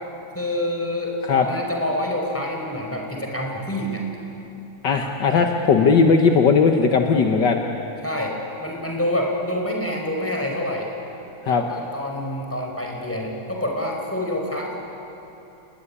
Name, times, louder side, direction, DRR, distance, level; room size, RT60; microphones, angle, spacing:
voice 1, 0.3-4.0 5.3-5.5 8.0-10.9 11.5-14.8, left 1 dB, 5° left, 0 dB, 4.6 m, -27 dB
voice 2, 4.8-7.6 11.5-11.6, left 5 dB, 60° left, 3 dB, 1.8 m, -17 dB
29.5 x 20.0 x 10.0 m, 2.9 s
omnidirectional pair, 2.2 m